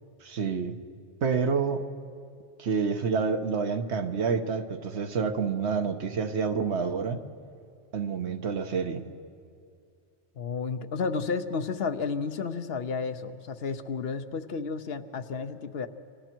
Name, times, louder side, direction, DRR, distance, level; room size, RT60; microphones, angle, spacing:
voice 1, 0.2-0.8 1.2-1.8 2.6-7.2 7.9-9.0, right 5 dB, 75° right, 7 dB, 1.3 m, -28 dB
voice 2, 10.4-15.9, left 5 dB, 65° left, 9 dB, 1.0 m, -32 dB
28.5 x 23.5 x 4.5 m, 2.3 s
omnidirectional pair, 1.1 m